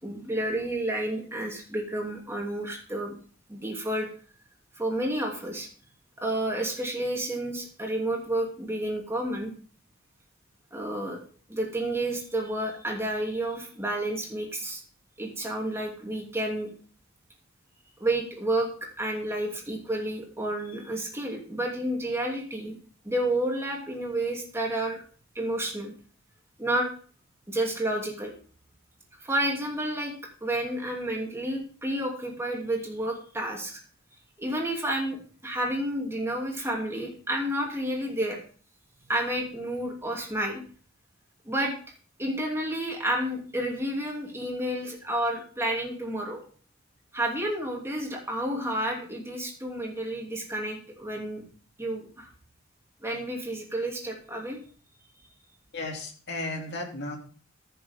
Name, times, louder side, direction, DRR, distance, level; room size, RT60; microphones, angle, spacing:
voice 1, 0.0-3.2 3.5-4.1 4.8-5.7 6.2-9.5 10.7-11.2 11.5-14.8 15.2-16.7 18.0-22.8 23.0-25.0 25.3-25.9 26.6-26.9 27.5-28.3 29.2-30.1 30.4-33.8 34.4-38.4 39.1-40.6 41.5-41.7 42.2-46.4 47.1-51.4 51.8-52.3 53.0-54.6, right 1 dB, 15° right, 0 dB, 2.8 m, -30 dB
voice 2, 55.7-57.2, left 2 dB, 60° left, 2 dB, 2.6 m, -34 dB
14.5 x 6.8 x 3.6 m, 0.41 s
head